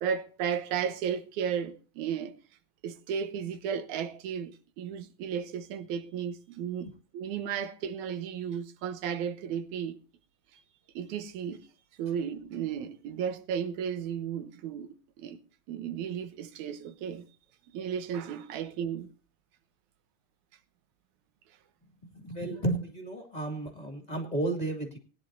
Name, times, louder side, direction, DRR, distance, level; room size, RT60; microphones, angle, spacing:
voice 1, 0.0-2.3 2.8-10.0 10.5-10.6 11.0-11.7 12.0-15.4 15.7-17.2 17.7-19.1, right 8 dB, 85° right, 2.4 m, -34 dB
voice 2, 22.0-25.0, right 2 dB, 15° left, 1.9 m, -33 dB
20.0 x 10.0 x 2.7 m
omnidirectional pair, 3.3 m